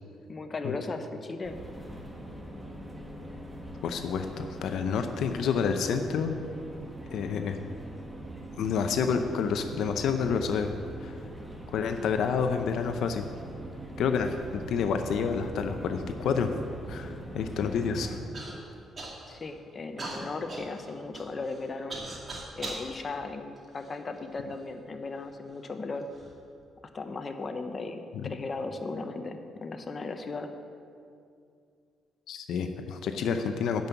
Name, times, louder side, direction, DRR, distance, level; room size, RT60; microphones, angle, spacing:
voice 1, 0.3-1.6 19.3-22.0 22.6-26.1 26.9-30.5, left 3 dB, 35° left, 7 dB, 0.8 m, -36 dB
sound 1, 1.4-18.2, right 1 dB, 10° right, 1.5 m, -42 dB
voice 2, 3.8-6.3 7.1-7.6 8.6-10.7 11.0-11.2 11.7-13.3 14.0-16.5 16.9-18.2 28.1-28.2 32.3-33.9, left 6 dB, 75° left, 6 dB, 0.6 m, -29 dB
Human voice / Cough, 18.3-18.5 19.0-19.5 20.0-22.9 23.6-24.4 25.1-25.2 25.9-26.3, right 2 dB, 40° right, 2.4 m, -40 dB
10.5 x 5.4 x 8.1 m, 2.4 s
cardioid pair, 90°, 0 cm